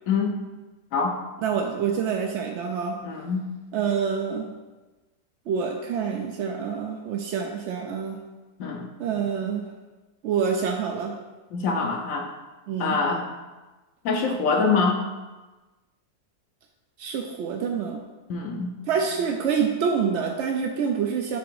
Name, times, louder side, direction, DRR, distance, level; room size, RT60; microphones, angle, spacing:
voice 1, 1.4-3.1 3.7-4.5 5.5-8.2 9.0-9.7 10.2-11.2 12.7-13.0 17.0-18.0 18.9-21.4, right 6 dB, 70° right, 1 dB, 0.7 m, -27 dB
voice 2, 3.0-3.4 8.6-8.9 11.5-12.3 12.8-13.3 14.0-15.0 18.3-18.7, left 4 dB, 65° left, 3 dB, 1.0 m, -24 dB
7.6 x 2.9 x 4.7 m, 1.2 s
omnidirectional pair, 1.6 m